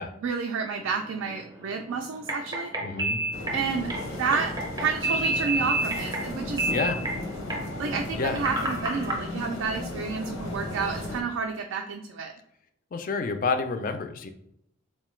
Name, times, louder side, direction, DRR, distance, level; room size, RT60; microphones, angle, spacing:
voice 1, 0.2-2.7 3.5-3.9 4.2-6.7 7.8-12.3, right 5 dB, 70° right, 4 dB, 0.3 m, -30 dB
sound 1, 0.8-9.2, right 2 dB, 20° right, 0.5 m, -31 dB
voice 2, 2.8-3.2 6.7-7.0 8.2-8.4 12.9-14.3, left 4 dB, 40° left, 7 dB, 0.3 m, -29 dB
sound 2, 3.3-11.2, left 1 dB, 85° left, 0.7 m, -35 dB
3.8 x 2.2 x 3.1 m, 0.77 s
head